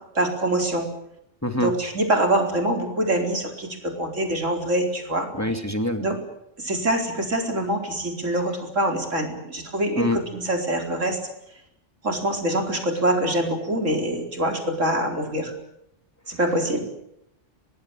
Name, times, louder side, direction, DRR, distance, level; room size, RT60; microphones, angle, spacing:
voice 1, 0.1-0.9 1.6-5.3 6.0-6.2 6.6-11.2 12.0-15.5 16.3-16.8, right 1 dB, 90° right, 3 dB, 4.8 m, -24 dB
voice 2, 1.4-1.7 5.3-6.0 10.0-10.2, left 1 dB, 15° left, 6 dB, 2.2 m, -25 dB
23.5 x 20.0 x 9.0 m, 0.78 s
omnidirectional pair, 1.3 m